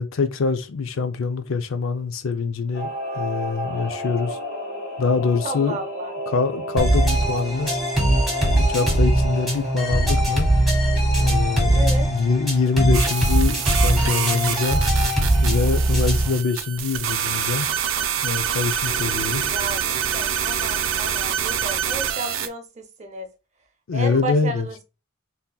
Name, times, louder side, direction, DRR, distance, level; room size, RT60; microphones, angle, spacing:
voice 1, 0.0-4.4 5.0-5.8 6.3-7.8 8.4-10.5 11.2-14.8 15.4-17.7 18.2-19.5 23.9-24.7, left 4 dB, 80° left, 0.5 m, -24 dB
Singing / Musical instrument, 2.7-12.8 13.1-13.2, equal, 55° left, 1.7 m, -33 dB
voice 2, 5.4-6.1 11.7-12.1 19.5-23.3 23.9-24.8, right 1 dB, 35° right, 0.6 m, -32 dB
sound 1, 6.8-16.4, right 1 dB, ahead, 1.3 m, -20 dB
sound 2, 12.9-22.5, right 9 dB, 80° right, 0.4 m, -26 dB
3.7 x 2.7 x 2.3 m
head